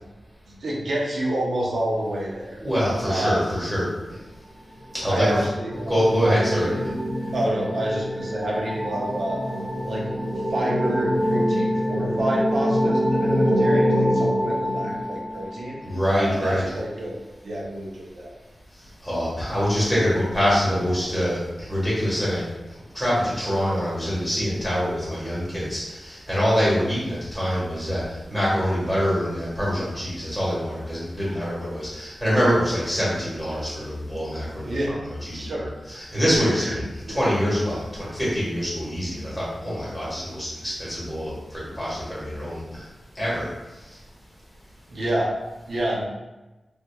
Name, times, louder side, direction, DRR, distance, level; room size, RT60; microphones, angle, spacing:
voice 1, 0.5-2.6 3.0-3.4 5.0-6.8 7.3-9.4 9.9-10.1 10.5-15.8 16.1-17.2 17.4-18.3 31.3-31.4 34.6-35.0 35.3-35.7 36.4-37.2 44.9-45.3 45.7-46.0, right 1 dB, 70° right, -3 dB, 0.7 m, -28 dB
voice 2, 2.5-3.8 5.0-5.4 5.7-6.7 15.8-16.8 19.0-22.5 22.9-42.8 43.1-43.4, equal, ahead, -9 dB, 1.4 m, -25 dB
sound 1, 4.8-15.5, equal, 25° right, 0.6 m, -25 dB
3.3 x 2.8 x 2.3 m, 1.1 s
wide cardioid pair, 140°, 0 cm